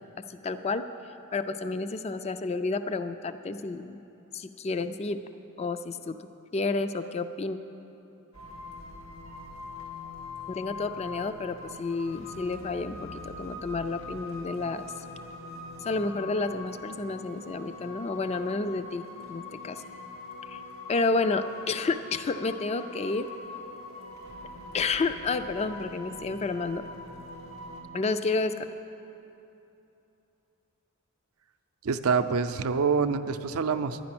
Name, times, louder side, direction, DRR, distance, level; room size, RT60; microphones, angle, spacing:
voice 1, 0.3-0.8 1.3-4.0 4.3-5.2 5.6-6.2 6.5-7.6 10.5-14.9 15.8-19.0 19.3-19.8 20.5-20.6 20.9-23.3 24.7-26.8 27.9-28.6, left 3 dB, 30° left, 11 dB, 0.3 m, -30 dB
sound 1, 8.3-27.8, left 3 dB, 90° left, 2.1 m, -43 dB
voice 2, 31.8-34.0, right 5 dB, 85° right, 9 dB, 0.5 m, -26 dB
10.5 x 10.5 x 6.0 m, 2.9 s
head